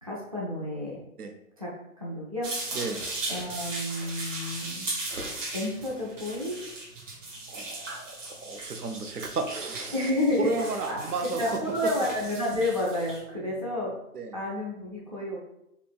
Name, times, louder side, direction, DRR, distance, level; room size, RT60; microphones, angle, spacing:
voice 1, 0.0-1.0 1.6-1.7 2.0-2.5 3.3-4.8 5.5-6.6 9.9-11.0 11.4-13.9 14.3-15.4, left 1 dB, 25° right, -5 dB, 0.4 m, -30 dB
sound 1, 2.4-13.2, right 2 dB, 55° right, 1.2 m, -37 dB
voice 2, 7.5-10.1 10.4-11.9 13.4-13.6 14.1-14.4, right 4 dB, 85° right, 6 dB, 0.7 m, -33 dB
4.3 x 2.8 x 2.3 m, 0.82 s
figure-of-eight pair, 145°, 45 cm